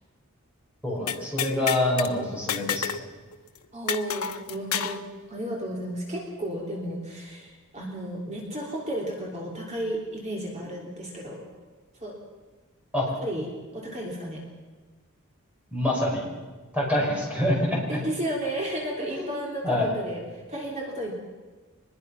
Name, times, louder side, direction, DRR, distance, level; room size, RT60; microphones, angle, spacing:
voice 1, 0.8-3.0 12.9-13.1 15.7-16.3 16.7-18.0 19.1-19.4 19.6-19.9, left 1 dB, 5° right, -3 dB, 5.9 m, -26 dB
sound 1, 1.1-2.1 2.5-3.1 3.3-3.4 3.9-5.0, left 7 dB, 85° left, 1.1 m, -29 dB
voice 2, 3.7-5.0 5.3-11.5 12.0-12.2 13.2-13.5 13.7-14.4 17.9-21.1, right 1 dB, 30° right, -1 dB, 3.4 m, -33 dB
23.5 x 21.0 x 5.8 m, 1.3 s
head